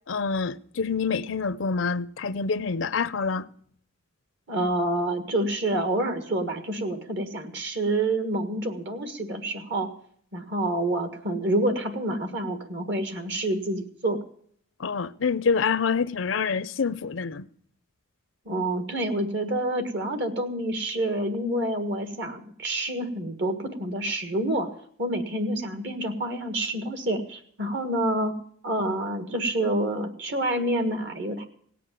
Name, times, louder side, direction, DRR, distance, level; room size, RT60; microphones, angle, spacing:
voice 1, 0.1-3.5 14.8-17.4, left 5 dB, 65° left, 0.5 m, -26 dB
voice 2, 4.5-9.9 10.3-14.2 18.4-24.7 25.0-28.3 28.6-31.5, right 1 dB, 55° right, 1.6 m, -28 dB
17.5 x 8.5 x 7.1 m
head